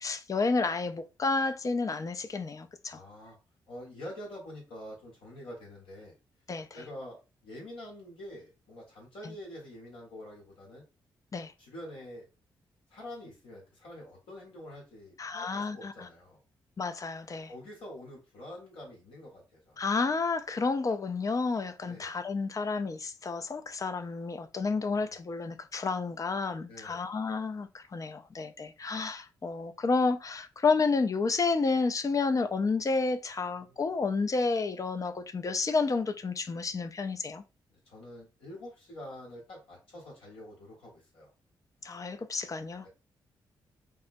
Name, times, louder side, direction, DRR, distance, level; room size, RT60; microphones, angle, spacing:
voice 1, 0.0-3.0 6.5-6.7 9.2-9.3 11.3-11.5 15.2-16.1 16.8-17.5 19.8-37.4 41.8-42.9, left 4 dB, 35° left, 0.4 m, -30 dB
voice 2, 2.9-3.4 3.7-6.1 6.7-10.8 11.6-12.3 12.9-16.4 17.4-19.8 21.8-22.1 24.7-25.2 26.7-27.1 33.6-33.8 37.7-41.3 42.8-42.9, left 1 dB, 80° left, 1.4 m, -46 dB
3.5 x 2.1 x 2.6 m
hypercardioid pair, 45°, 9 cm